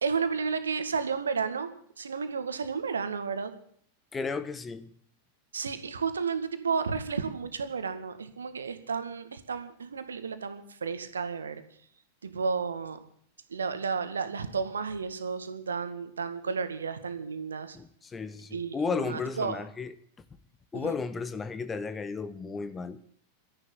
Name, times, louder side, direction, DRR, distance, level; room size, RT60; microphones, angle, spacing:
voice 1, 0.0-1.7 2.0-3.5 5.5-11.6 12.2-13.0 13.5-17.8 18.5-19.6 20.7-21.0, right 5 dB, 70° right, 2.0 m, -32 dB
voice 2, 4.1-4.9 17.7-19.9 20.7-23.0, left 5 dB, 15° left, 1.2 m, -34 dB
13.0 x 11.0 x 9.7 m
figure-of-eight pair, 90°, 0 cm